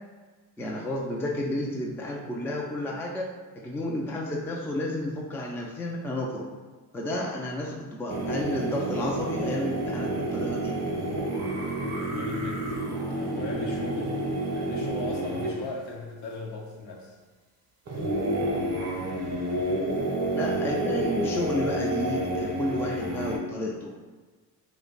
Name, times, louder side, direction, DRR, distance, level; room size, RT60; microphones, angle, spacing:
voice 1, 0.6-6.5 6.9-10.7 20.3-24.0, left 1 dB, 5° left, -1 dB, 0.4 m, -31 dB
sound 1, 8.1-15.8 17.9-23.4, right 1 dB, 35° right, 0.8 m, -29 dB
voice 2, 11.8-12.8 13.1-14.2 14.5-17.2, left 3 dB, 60° left, -2 dB, 0.9 m, -38 dB
2.5 x 2.2 x 3.8 m, 1.4 s
hypercardioid pair, 50°, 48 cm